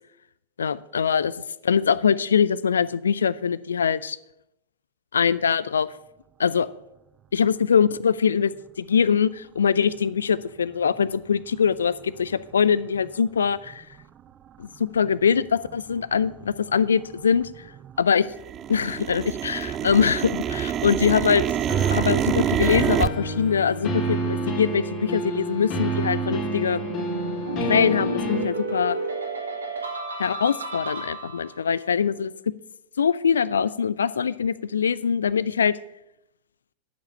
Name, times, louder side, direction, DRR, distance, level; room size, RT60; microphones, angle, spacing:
voice 1, 0.6-1.3 1.6-4.2 5.1-5.9 6.4-6.7 7.3-8.5 8.8-13.8 14.6-17.5 18.0-18.3 18.7-21.4 21.9-26.8 27.6-29.0 30.2-32.3 33.0-35.8, left 7 dB, 70° left, 19 dB, 0.4 m, -23 dB
sound 1, 12.2-12.3 13.0-13.1 13.7-14.0 14.5-14.6 14.8-15.4 15.6-18.0 18.3-23.1, right 10 dB, 30° right, 0.4 m, -27 dB
sound 2, 21.7-28.4, right 2 dB, 40° left, 2.6 m, -28 dB
sound 3, 26.7-31.6, right 3 dB, 75° right, 2.0 m, -32 dB
11.0 x 7.3 x 6.4 m, 0.84 s
figure-of-eight pair, 90°, 0 cm